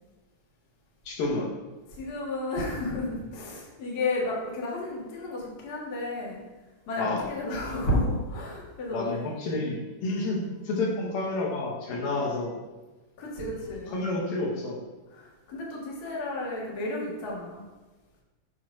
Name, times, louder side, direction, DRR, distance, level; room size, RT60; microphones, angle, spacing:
voice 1, 1.1-1.5 7.0-7.3 8.9-12.6 13.9-14.8, left 2 dB, 85° left, -2 dB, 3.0 m, -30 dB
voice 2, 1.9-6.4 6.9-9.3 10.1-10.3 10.7-10.9 12.1-12.2 13.2-13.9 15.1-17.7, left 1 dB, 40° left, -4 dB, 1.5 m, -32 dB
7.1 x 3.2 x 6.1 m, 1.2 s
omnidirectional pair, 3.9 m